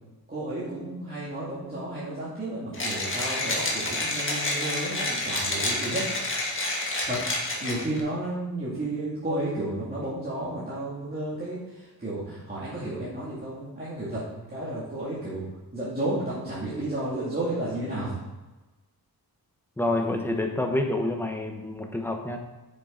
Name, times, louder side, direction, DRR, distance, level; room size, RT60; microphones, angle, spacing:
voice 1, 0.3-6.1 7.0-7.2 7.6-15.4 15.7-18.2, right 1 dB, 25° right, -9 dB, 2.5 m, -32 dB
Mechanisms, 2.7-8.0, left 1 dB, 30° left, 1.9 m, -29 dB
voice 2, 19.8-22.4, left 1 dB, 5° left, 3 dB, 1.1 m, -28 dB
9.3 x 7.3 x 4.0 m, 1.1 s
wide cardioid pair, 155°, 38 cm